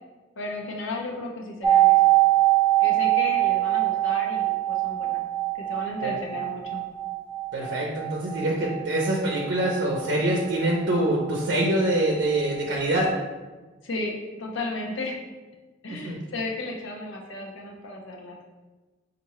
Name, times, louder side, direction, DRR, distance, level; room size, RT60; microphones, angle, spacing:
voice 1, 0.4-2.1 2.8-5.2 5.5-6.8 13.8-15.2 15.8-18.4, left 2 dB, 85° left, 0 dB, 0.6 m, -34 dB
sound 1, 1.6-11.4 11.6-11.7, right 15 dB, 10° right, 0.8 m, -23 dB
voice 2, 7.5-13.1 16.0-16.2, right 1 dB, 60° right, -2 dB, 0.6 m, -25 dB
5.4 x 2.5 x 3.0 m, 1.2 s
head